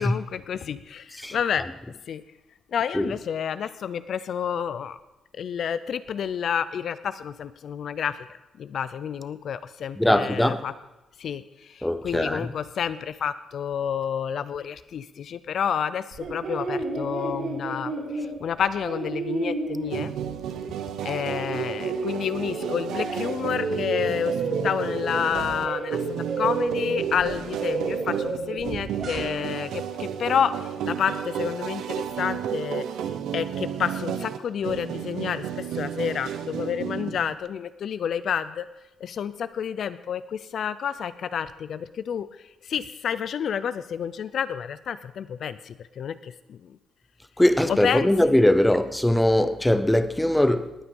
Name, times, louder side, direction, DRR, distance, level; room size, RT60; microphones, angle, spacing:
voice 1, 0.0-1.1 1.3-1.6 2.1-2.2 2.7-5.0 5.3-8.2 8.6-10.7 11.2-11.4 11.7-20.1 21.0-30.5 30.8-32.8 33.3-38.7 39.0-42.3 42.6-46.6 47.7-48.1, left 8 dB, 55° left, 0.5 m, -29 dB
voice 2, 10.0-10.7 11.8-12.5 47.4-50.7, left 1 dB, 5° left, 0.6 m, -21 dB
sound 1, 16.1-20.5 20.8-23.3 23.5-29.5, right 3 dB, 60° right, 4.1 m, -31 dB
sound 2, 19.9-37.3, right 9 dB, 90° right, 0.8 m, -32 dB
19.0 x 8.9 x 5.4 m
cardioid pair, 145°, 0 cm